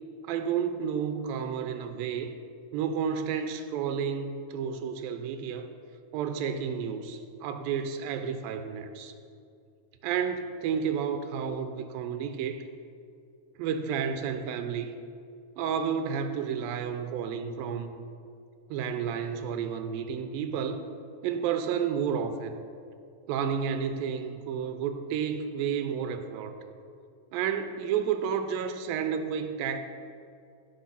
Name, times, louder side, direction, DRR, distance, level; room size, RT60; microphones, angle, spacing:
voice 1, 0.3-2.3 2.7-5.7 6.1-9.1 10.0-12.7 13.6-15.0 15.6-18.0 18.7-20.9 21.2-22.5 23.3-26.6 27.3-29.8, right 7 dB, 85° right, 8 dB, 2.4 m, -31 dB
16.0 x 5.6 x 5.7 m, 2.4 s
omnidirectional pair, 4.1 m